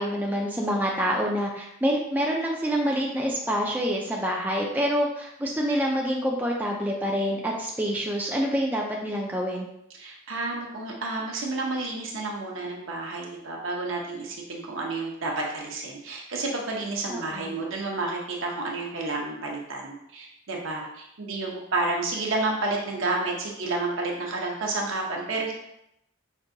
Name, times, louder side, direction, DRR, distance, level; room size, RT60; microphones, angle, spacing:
voice 1, 0.0-9.7 17.1-17.6, equal, 10° right, -1 dB, 0.3 m, -27 dB
voice 2, 10.0-25.5, right 2 dB, 70° right, -1 dB, 0.8 m, -30 dB
5.2 x 2.6 x 2.6 m, 0.79 s
head